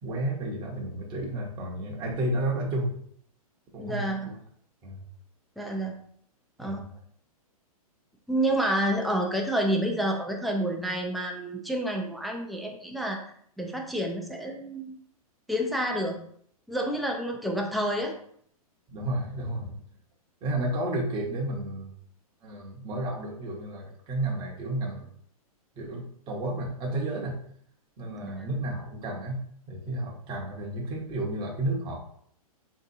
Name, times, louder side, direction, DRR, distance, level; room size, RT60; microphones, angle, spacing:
voice 1, 0.0-2.9 3.7-4.2 4.8-5.0 6.6-6.8 18.9-19.8 20.4-21.9 22.4-25.1 25.8-27.4 28.0-32.0, right 1 dB, 25° right, -1 dB, 0.7 m, -32 dB
voice 2, 3.8-4.3 5.6-5.9 6.6-6.9 8.3-13.2 13.6-14.9 15.5-16.2 16.7-18.1 28.2-28.5, right 1 dB, ahead, 1 dB, 0.3 m, -29 dB
3.6 x 2.7 x 2.6 m, 0.63 s
hypercardioid pair, 135°, 19 cm